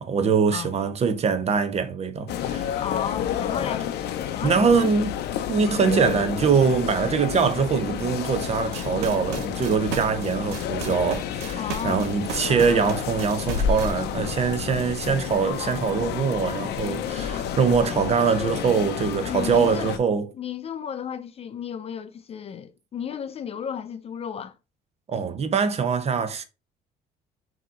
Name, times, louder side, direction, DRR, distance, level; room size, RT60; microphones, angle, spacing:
voice 1, 0.0-2.7 4.4-5.1 5.5-20.3 25.1-26.4, right 5 dB, 40° right, 0.7 m, -23 dB
sound 1, 2.3-20.0, left 9 dB, 80° left, 0.6 m, -30 dB
voice 2, 2.7-3.9 4.3-4.9 11.5-12.1 19.3-19.9 20.3-24.6, left 8 dB, 35° left, 0.4 m, -33 dB
sound 2, 8.5-13.9, right 7 dB, 90° right, 0.8 m, -35 dB
4.8 x 2.9 x 3.7 m
cardioid pair, 110°, 17 cm